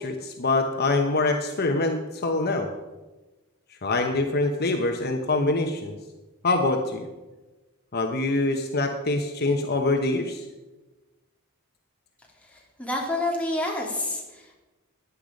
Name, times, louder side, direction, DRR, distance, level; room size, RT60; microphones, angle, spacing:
voice 1, 0.0-2.7 3.8-6.0 6.4-7.0 7.9-10.5, left 2 dB, 50° left, 4 dB, 1.0 m, -24 dB
voice 2, 12.4-14.5, left 1 dB, 5° left, -2 dB, 3.0 m, -29 dB
15.5 x 10.5 x 5.2 m, 1.2 s
head